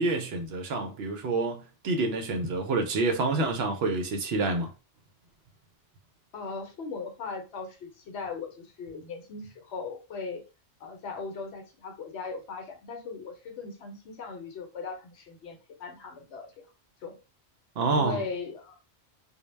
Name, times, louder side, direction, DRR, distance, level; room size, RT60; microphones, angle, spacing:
voice 1, 0.0-4.7 17.8-18.2, right 3 dB, 65° right, 0.7 m, -28 dB
voice 2, 6.3-10.4 10.8-16.5 17.0-17.2 17.9-18.9, left 4 dB, 70° left, 0.9 m, -38 dB
2.2 x 2.1 x 3.1 m
omnidirectional pair, 1.2 m